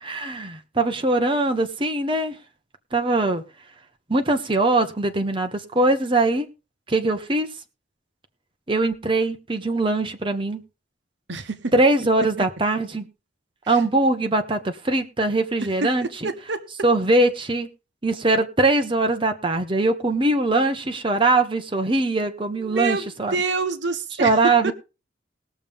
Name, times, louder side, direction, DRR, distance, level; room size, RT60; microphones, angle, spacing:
voice 1, 0.0-2.3 2.9-3.4 4.1-6.5 6.9-7.5 8.7-10.6 11.7-13.0 13.7-16.3 16.8-17.7 18.0-23.3 24.2-24.7, right 2 dB, 25° right, 1.1 m, -21 dB
voice 2, 11.3-11.7 13.6-13.8 15.8-16.7 22.6-23.1 23.3-24.3 24.6-24.7, right 3 dB, 70° right, 1.1 m, -27 dB
20.0 x 7.0 x 3.6 m
head